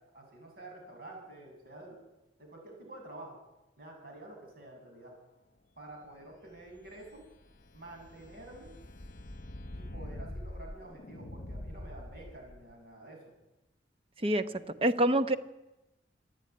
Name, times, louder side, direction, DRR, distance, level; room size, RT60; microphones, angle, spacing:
voice 1, 0.1-2.0 2.4-3.4 3.8-5.2 5.8-7.2 7.7-8.7 9.7-13.2 14.3-14.6, right 2 dB, 55° right, 1 dB, 7.9 m, -49 dB
sound 1, 6.4-12.7, left 1 dB, 45° left, 1.2 m, -45 dB
voice 2, 14.2-15.4, right 1 dB, 30° right, 11 dB, 1.0 m, -27 dB
27.0 x 10.5 x 9.7 m, 0.99 s
head